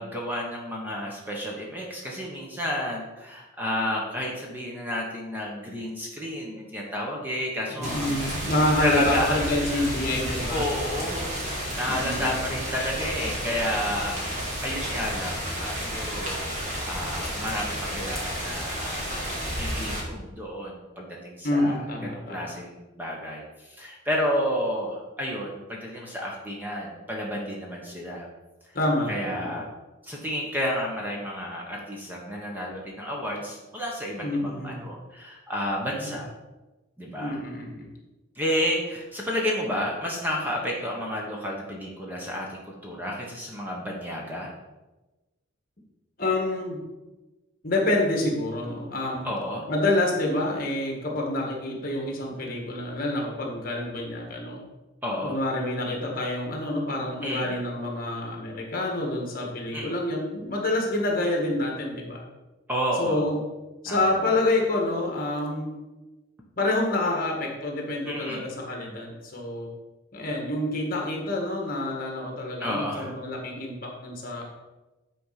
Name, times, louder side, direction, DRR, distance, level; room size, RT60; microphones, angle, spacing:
voice 1, 0.0-8.1 8.8-9.9 10.5-11.4 11.7-14.2 14.6-28.3 29.1-29.7 30.0-36.3 37.0-37.4 38.4-44.5 49.2-49.7 55.0-55.4 57.2-57.5 59.7-59.9 62.7-63.2 63.9-64.4 68.1-68.4 72.6-73.1, equal, 10° right, -2 dB, 1.2 m, -31 dB
voice 2, 7.7-10.7 11.8-12.5 21.4-22.6 28.7-29.5 34.2-34.8 36.0-36.2 37.2-37.9 46.2-46.8 47.6-49.3 49.7-54.6 55.2-62.2 63.0-63.4 63.8-65.7 66.6-69.7 70.1-74.4, left 1 dB, 45° left, 0 dB, 1.8 m, -27 dB
sound 1, 7.8-20.0, equal, 35° right, 2.3 m, -31 dB
9.4 x 4.3 x 5.8 m, 1.1 s
head